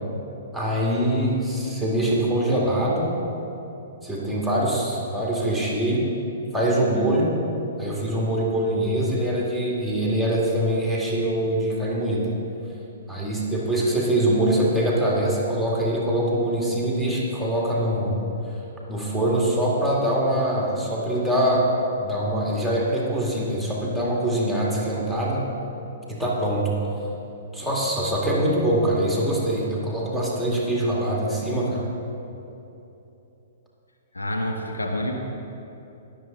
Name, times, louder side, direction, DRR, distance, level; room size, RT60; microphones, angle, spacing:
voice 1, 0.5-3.2 4.0-6.1 6.5-7.4 7.8-12.3 13.1-18.2 18.9-21.7 22.0-25.5 26.1-26.7 27.5-31.9, right 1 dB, 5° left, -5 dB, 2.2 m, -23 dB
voice 2, 34.1-35.1, left 1 dB, 80° left, 2 dB, 1.2 m, -27 dB
19.5 x 7.0 x 3.9 m, 2.9 s
figure-of-eight pair, 115°, 0 cm